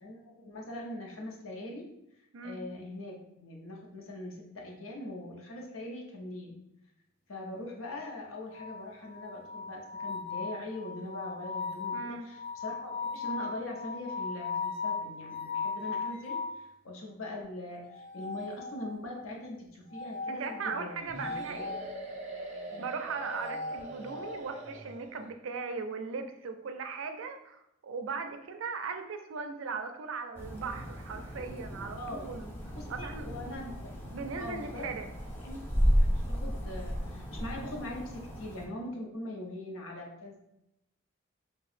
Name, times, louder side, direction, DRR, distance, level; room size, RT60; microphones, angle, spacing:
voice 1, 0.0-1.9 2.4-6.6 7.3-20.9 22.7-23.0 31.9-32.3 32.7-33.9 34.4-34.9 35.4-40.4, left 1 dB, 90° left, 0 dB, 0.8 m, -42 dB
sound 1, 8.5-16.6 17.9-19.2 19.9-21.9 23.1-24.4, left 4 dB, 45° left, 0.8 m, -38 dB
voice 2, 11.9-12.3 20.3-21.7 22.8-32.5 32.9-33.3 34.1-35.1, right 4 dB, 75° right, 7 dB, 0.4 m, -38 dB
sound 2, 21.1-25.3, right 1 dB, 30° right, 0.6 m, -43 dB
sound 3, 30.3-38.7, equal, 10° left, 0.4 m, -33 dB
2.8 x 2.3 x 4.1 m, 0.82 s
head